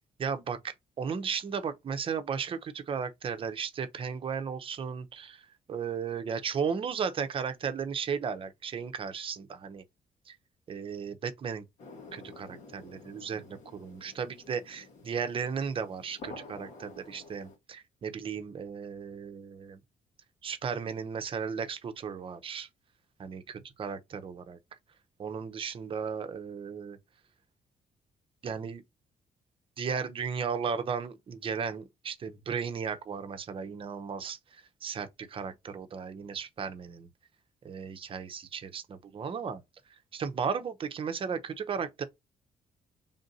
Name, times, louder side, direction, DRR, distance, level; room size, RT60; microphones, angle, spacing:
voice 1, 0.2-5.4 5.7-9.8 10.3-10.4 10.7-11.6 12.1-19.8 20.4-22.7 23.2-24.6 25.2-27.0 28.4-28.8 29.8-34.4 34.8-37.1 37.6-39.6 40.1-42.0, right 6 dB, 45° right, 0.7 m, -35 dB
sound 1, 11.8-17.6, left 3 dB, 75° left, 1.4 m, -50 dB
3.6 x 2.6 x 4.0 m
cardioid pair, 100°, 13 cm